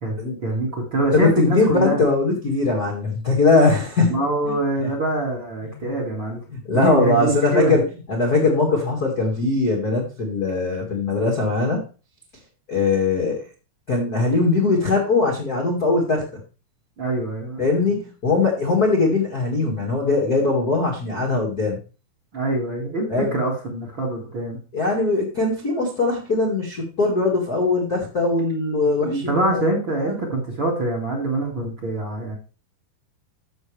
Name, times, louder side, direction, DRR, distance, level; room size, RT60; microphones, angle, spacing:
voice 1, 0.0-2.0 4.1-6.4 6.7-7.8 17.0-17.6 22.3-24.6 29.0-32.4, right 2 dB, 35° right, -1 dB, 2.0 m, -25 dB
voice 2, 1.1-4.5 4.8-4.9 5.7-5.9 6.5-7.8 8.1-11.8 12.7-13.4 13.9-16.2 17.6-21.8 23.1-23.3 24.7-29.6 30.0-30.2, left 3 dB, 40° left, -1 dB, 1.3 m, -21 dB
14.0 x 6.2 x 3.4 m, 0.34 s
omnidirectional pair, 5.1 m